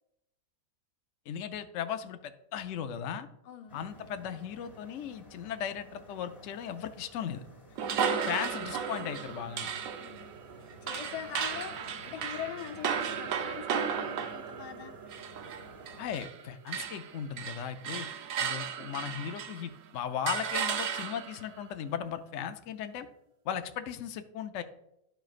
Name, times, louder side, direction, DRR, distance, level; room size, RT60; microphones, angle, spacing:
voice 1, 1.3-3.3 3.7-7.4 8.3-9.7 16.0-18.1 18.4-23.1 23.5-24.6, left 8 dB, 90° left, 8 dB, 0.6 m, -37 dB
voice 2, 3.4-3.8 7.9-8.7 10.0-10.3 10.8-15.0, left 8 dB, 65° left, 3 dB, 1.4 m, -43 dB
sound 1, 3.7-16.3, equal, 15° left, 1.5 m, -52 dB
sound 2, 7.8-16.4 16.7-19.7 20.3-21.5, right 7 dB, 70° right, 0.8 m, -35 dB
13.5 x 4.5 x 2.4 m, 0.83 s
omnidirectional pair, 2.0 m